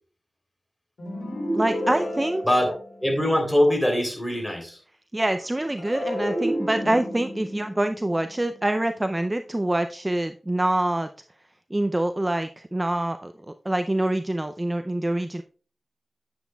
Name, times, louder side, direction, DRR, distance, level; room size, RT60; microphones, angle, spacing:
sound 1, 1.0-3.4 5.8-9.1, equal, 75° left, 2.9 m, -31 dB
voice 1, 1.5-2.4 5.1-11.1 11.7-15.4, right 1 dB, 20° right, 8 dB, 0.4 m, -25 dB
voice 2, 2.4-2.7 3.0-4.8, left 1 dB, 10° left, 3 dB, 3.2 m, -22 dB
9.4 x 8.0 x 2.3 m, 0.40 s
wide cardioid pair, 65°, 0 cm